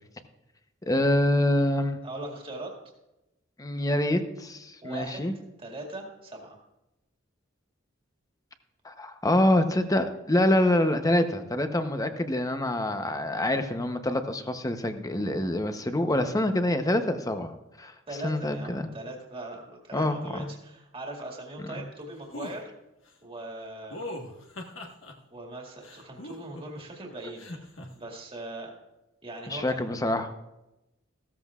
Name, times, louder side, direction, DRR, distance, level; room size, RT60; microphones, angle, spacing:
voice 1, 0.8-2.0 3.6-5.3 8.8-17.9 18.2-18.9 19.9-20.5 21.7-21.8 29.5-30.3, left 1 dB, 20° left, 8 dB, 0.8 m, -26 dB
voice 2, 2.0-2.7 4.8-5.3 5.6-6.6 18.1-22.7 23.2-24.1 25.3-27.7 27.9-28.7 29.2-29.9, right 2 dB, 30° right, 0 dB, 2.0 m, -40 dB
sound 1, 22.3-22.6 23.9-25.1 25.8-26.8 27.4-27.9, left 1 dB, 85° left, 1.5 m, -39 dB
15.5 x 13.5 x 2.4 m, 0.95 s
head